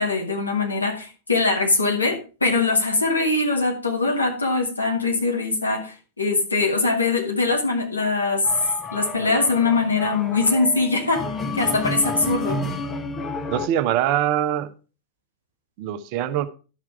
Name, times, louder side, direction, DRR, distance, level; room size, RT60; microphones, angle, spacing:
voice 1, 0.0-8.5 8.9-11.2 11.5-12.6, left 3 dB, 80° left, 2.0 m, -22 dB
sound 1, 8.4-13.7, left 2 dB, 15° left, 1.1 m, -30 dB
voice 2, 13.5-14.7 15.8-16.5, right 11 dB, 45° right, 0.8 m, -23 dB
11.5 x 6.1 x 4.5 m
figure-of-eight pair, 90°, 0 cm